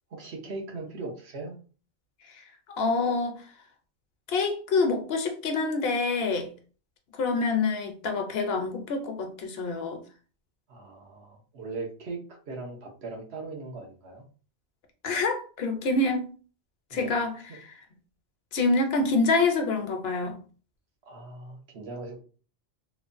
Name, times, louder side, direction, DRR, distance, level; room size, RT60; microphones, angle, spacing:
voice 1, 0.1-1.5 10.7-12.2 12.5-14.2 16.9-17.2 17.5-17.6 21.1-22.2, right 3 dB, 80° right, 1.1 m, -39 dB
voice 2, 2.8-3.4 4.3-6.5 7.2-10.0 15.0-16.3 16.9-17.6 18.5-20.4, left 3 dB, 70° left, 0.9 m, -26 dB
3.1 x 2.2 x 2.4 m
omnidirectional pair, 1.1 m